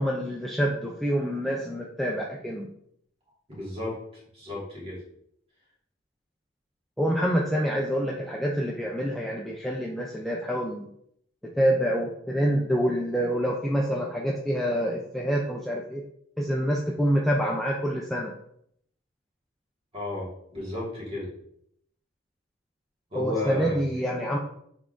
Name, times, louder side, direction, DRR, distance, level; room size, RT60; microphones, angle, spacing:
voice 1, 0.0-2.7 7.0-10.9 11.4-16.0 16.4-18.3 23.1-24.4, equal, ahead, -2 dB, 0.4 m, -26 dB
voice 2, 3.5-4.0 4.3-5.0 19.9-21.3 23.1-23.7, left 2 dB, 30° right, -5 dB, 1.8 m, -33 dB
5.5 x 3.5 x 2.5 m, 0.71 s
head